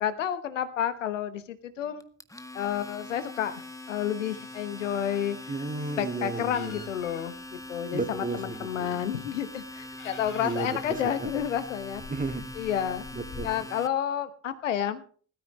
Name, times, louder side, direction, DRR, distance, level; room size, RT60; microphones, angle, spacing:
voice 1, 0.0-2.1 2.5-3.6 3.9-5.5 6.0-12.0 12.6-13.0 13.4-15.0, left 9 dB, 85° left, 13 dB, 1.1 m, -30 dB
Domestic sounds home sounds, 2.0-13.9, left 2 dB, 10° left, 1.7 m, -42 dB
voice 2, 5.5-6.8 7.9-9.0 10.4-11.3 12.1-12.5 13.1-13.7, right 3 dB, 20° right, 7 dB, 2.5 m, -34 dB
sound 1, 6.5-13.5, left 6 dB, 55° left, 3.0 m, -48 dB
20.5 x 13.5 x 3.1 m, 0.42 s
figure-of-eight pair, 40°, 37 cm